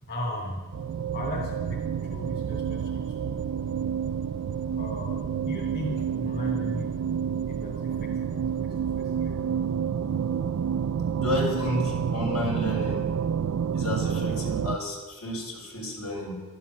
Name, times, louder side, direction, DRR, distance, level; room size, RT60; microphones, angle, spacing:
voice 1, 0.0-0.8 1.1-3.5 4.7-7.0 7.5-9.5, equal, 45° left, -2 dB, 3.1 m, -37 dB
sound 1, 0.7-14.8, right 7 dB, 75° right, 0.4 m, -29 dB
voice 2, 11.2-13.1 13.7-16.3, left 1 dB, 85° left, -2 dB, 4.3 m, -31 dB
12.5 x 11.5 x 7.0 m, 1.4 s
head